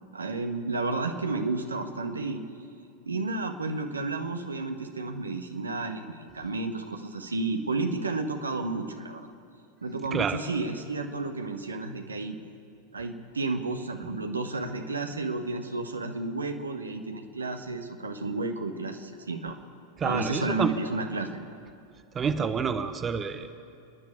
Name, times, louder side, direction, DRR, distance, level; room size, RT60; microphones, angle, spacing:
voice 1, 0.1-2.4 3.0-9.3 9.8-12.3 12.9-19.6 20.0-21.3, right 3 dB, 75° right, 5 dB, 1.5 m, -32 dB
voice 2, 20.0-20.7 22.1-23.6, right 6 dB, 20° right, 10 dB, 1.0 m, -28 dB
29.0 x 10.5 x 8.6 m, 2.5 s
figure-of-eight pair, 90°, 0 cm